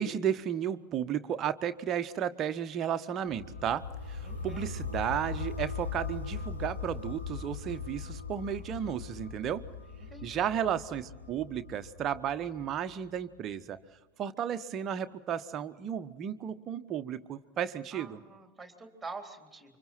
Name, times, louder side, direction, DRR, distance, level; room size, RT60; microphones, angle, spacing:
voice 1, 0.0-9.6 10.2-13.8 14.2-18.2, right 9 dB, 30° right, 10 dB, 1.1 m, -33 dB
sound 1, 3.3-13.2, left 4 dB, 75° left, 2.7 m, -40 dB
voice 2, 4.2-4.7 10.0-10.5 17.9-19.8, right 3 dB, 5° right, 4 dB, 3.5 m, -46 dB
29.5 x 25.5 x 4.4 m, 1.3 s
figure-of-eight pair, 90°, 0 cm